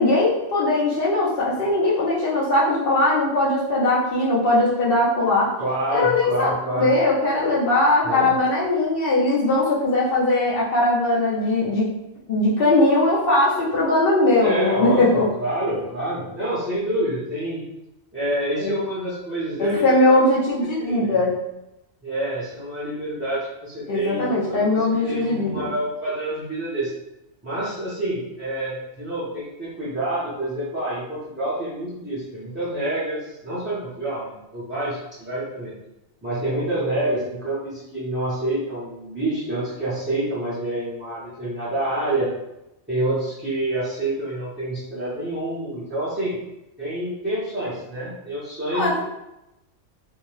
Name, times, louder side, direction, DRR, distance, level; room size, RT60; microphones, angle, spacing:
voice 1, 0.0-5.5 5.9-11.9 12.3-15.2 18.6-18.8 19.6-21.3 23.9-25.7 48.7-49.0, left 2 dB, 55° left, -5 dB, 0.8 m, -20 dB
voice 2, 5.6-6.9 8.0-8.3 14.4-17.6 18.1-20.2 20.8-21.1 22.0-26.9 27.4-35.7 36.2-42.3 42.9-46.4 46.8-49.0, right 1 dB, 15° right, -12 dB, 0.6 m, -27 dB
2.6 x 2.1 x 3.1 m, 0.91 s
omnidirectional pair, 1.3 m